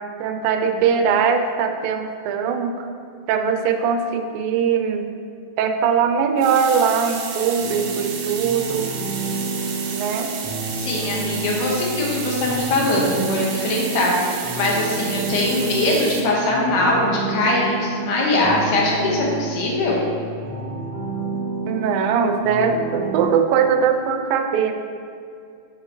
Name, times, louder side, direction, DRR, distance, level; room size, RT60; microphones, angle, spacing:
voice 1, 0.2-2.9 3.3-5.1 5.6-8.9 9.9-10.3 21.7-24.7, right 6 dB, 90° right, 6 dB, 2.4 m, -21 dB
sound 1, 6.4-16.2, right 5 dB, 70° right, 2.4 m, -32 dB
sound 2, 7.6-23.2, right 3 dB, 35° right, 2.4 m, -30 dB
voice 2, 10.7-20.0, left 2 dB, 70° left, -3 dB, 3.0 m, -21 dB
10.5 x 7.7 x 3.2 m, 2.3 s
omnidirectional pair, 3.9 m